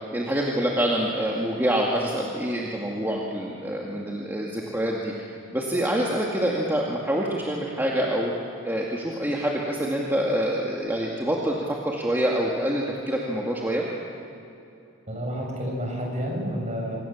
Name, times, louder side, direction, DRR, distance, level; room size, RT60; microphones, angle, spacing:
voice 1, 0.1-8.3 8.6-13.9, right 1 dB, 10° right, -3 dB, 2.2 m, -26 dB
voice 2, 15.1-17.0, equal, 35° right, -1 dB, 7.2 m, -30 dB
26.5 x 25.5 x 7.3 m, 2.7 s
head